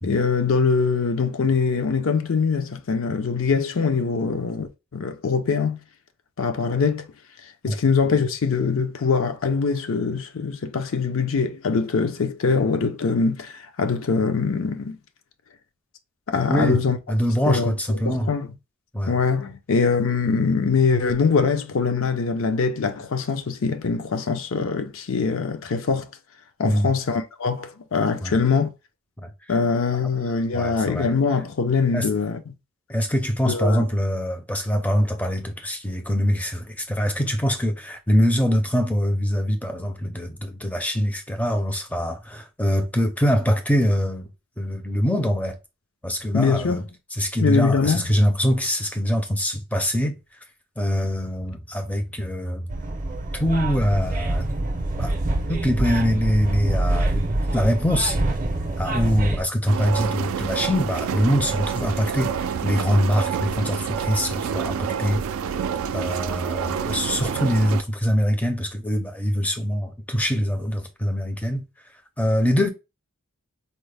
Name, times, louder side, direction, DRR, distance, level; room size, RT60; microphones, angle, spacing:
voice 1, 0.0-5.8 6.4-7.1 7.6-15.0 16.3-17.0 17.5-18.5 19.1-26.1 26.6-28.7 29.5-32.4 33.5-33.8 46.3-46.8 47.4-48.0, left 5 dB, 70° left, 0.5 m, -23 dB
voice 2, 16.5-16.8 17.1-18.3 18.9-19.2 26.6-26.9 28.2-28.3 29.2-29.3 30.5-31.1 31.9-32.1 32.9-44.3 44.6-45.6 46.0-46.8 47.1-50.2 50.8-52.7 53.4-54.5 55.0-55.1 55.5-58.2 58.8-65.2 65.9-71.7 72.2-72.7, equal, 5° left, 0.5 m, -23 dB
sound 1, 52.7-59.4, right 1 dB, 40° right, 0.6 m, -25 dB
sound 2, 59.7-67.8, right 7 dB, 80° right, 0.3 m, -28 dB
4.2 x 2.1 x 3.2 m
head